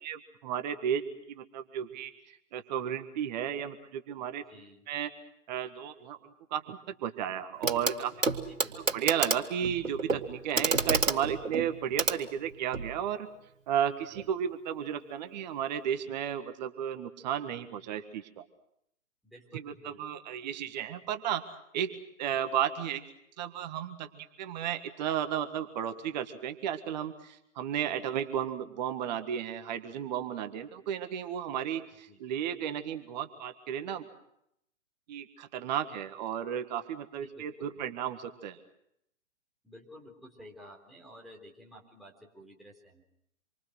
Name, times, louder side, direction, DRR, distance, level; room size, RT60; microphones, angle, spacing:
voice 1, 0.0-1.0 1.3-4.4 4.9-5.1 5.5-8.1 8.9-13.3 13.7-18.4 19.5-21.5 21.7-21.9 22.2-23.0 23.4-34.1 35.1-38.6, right 9 dB, 35° right, 8 dB, 1.7 m, -33 dB
voice 2, 4.5-4.8 8.6-9.1 14.1-14.3 19.2-20.0 32.1-32.2 37.2-37.7 39.6-43.0, equal, ahead, -3 dB, 3.9 m, -52 dB
Clock, 7.6-8.0 8.2-12.9 14.2-14.3, right 3 dB, 85° right, 2.1 m, -30 dB
27.0 x 24.5 x 6.4 m, 0.77 s
figure-of-eight pair, 125°, 38 cm